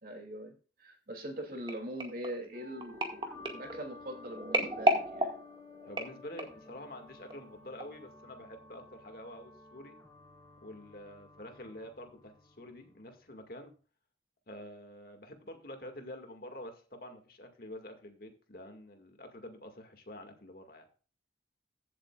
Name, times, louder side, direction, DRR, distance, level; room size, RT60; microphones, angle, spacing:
voice 1, 0.0-3.0 3.5-5.3, right 1 dB, 50° right, 3 dB, 2.8 m, -42 dB
sound 1, 1.7-6.7 7.3-7.5 7.8-7.9, right 1 dB, 25° right, 1.9 m, -34 dB
sound 2, 2.5-13.5, left 3 dB, 15° left, 3.3 m, -54 dB
voice 2, 5.9-10.0 10.6-13.7 14.5-20.9, left 1 dB, 55° left, 5 dB, 2.1 m, -47 dB
15.5 x 7.8 x 2.5 m, 0.37 s
head